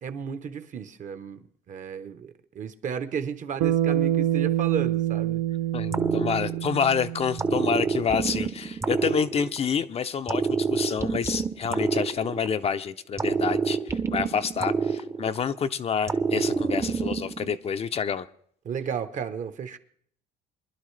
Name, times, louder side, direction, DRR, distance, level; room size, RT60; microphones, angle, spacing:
voice 1, 0.0-5.4 18.6-19.8, right 7 dB, 50° right, 0.9 m, -33 dB
Bass guitar, 3.6-8.0, right 12 dB, 85° right, 0.7 m, -26 dB
voice 2, 5.7-18.3, left 7 dB, 35° left, 0.5 m, -28 dB
sound 1, 5.9-6.9 7.4-9.8 10.3-12.7 13.2-15.6 16.1-17.6, right 5 dB, 15° right, 0.6 m, -27 dB
24.0 x 11.0 x 3.2 m
cardioid pair, 110°, 17 cm